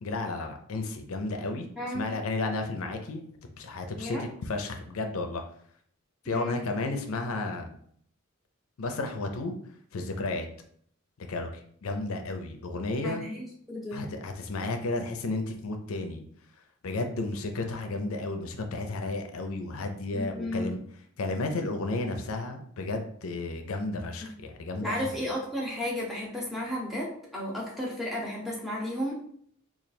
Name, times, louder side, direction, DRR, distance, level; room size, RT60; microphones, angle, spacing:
voice 1, 0.0-1.7 1.9-5.4 6.2-7.7 8.8-9.5 9.9-10.5 11.2-11.5 11.8-13.2 13.9-16.2 16.8-20.8 21.2-25.1, left 2 dB, 75° left, 5 dB, 0.5 m, -32 dB
voice 2, 1.8-2.1 3.9-4.3 6.3-6.6 13.0-14.1 20.1-20.7 24.7-29.4, left 1 dB, ahead, -4 dB, 0.8 m, -33 dB
3.2 x 2.4 x 4.1 m, 0.62 s
head